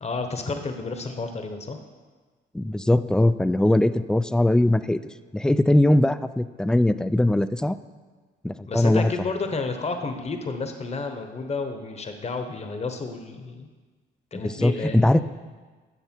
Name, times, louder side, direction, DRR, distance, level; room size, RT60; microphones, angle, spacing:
voice 1, 0.0-1.8 8.7-13.7 14.3-15.0, left 3 dB, 35° left, 6 dB, 1.0 m, -31 dB
voice 2, 2.5-5.0 5.3-7.8 8.4-9.1 14.6-15.2, left 1 dB, 5° left, 13 dB, 0.3 m, -20 dB
11.0 x 7.0 x 4.5 m, 1.4 s
cardioid pair, 90°, 20 cm